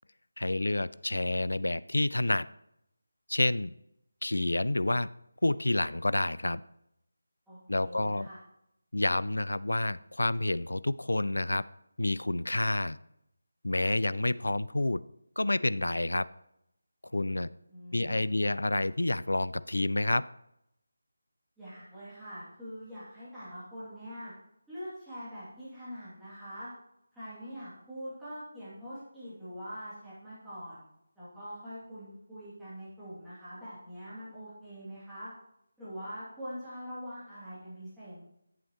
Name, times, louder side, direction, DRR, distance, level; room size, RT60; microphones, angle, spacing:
voice 1, 0.4-2.5 3.3-3.7 4.2-5.1 5.4-6.6 7.7-8.3 8.9-11.7 12.0-13.0 13.6-15.0 15.4-16.3 17.1-17.5 17.9-20.3, left 2 dB, 65° left, 18 dB, 0.3 m, -29 dB
voice 2, 7.5-8.4 17.7-18.5 21.6-24.3 24.7-26.7 27.1-30.8 31.2-35.3 35.8-38.2, equal, ahead, -15 dB, 2.5 m, -44 dB
11.5 x 7.1 x 3.0 m, 0.80 s
figure-of-eight pair, 160°, 0 cm